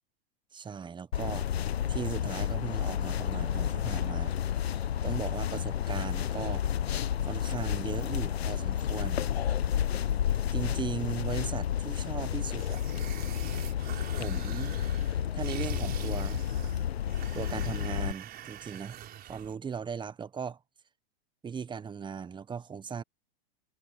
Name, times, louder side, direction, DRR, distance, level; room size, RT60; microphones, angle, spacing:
voice 1, 0.5-1.5 1.9-4.3 5.0-6.6 7.2-9.2 10.5-12.8 14.1-14.8 15.3-16.4 17.3-19.0 19.3-20.6 21.4-23.0, right 6 dB, 15° right, 1.2 m, -38 dB
sound 1, 1.1-18.1, left 9 dB, 85° left, 1.2 m, -31 dB
sound 2, 12.5-19.5, right 11 dB, 30° right, 4.5 m, -45 dB
hypercardioid pair, 115°, 30 cm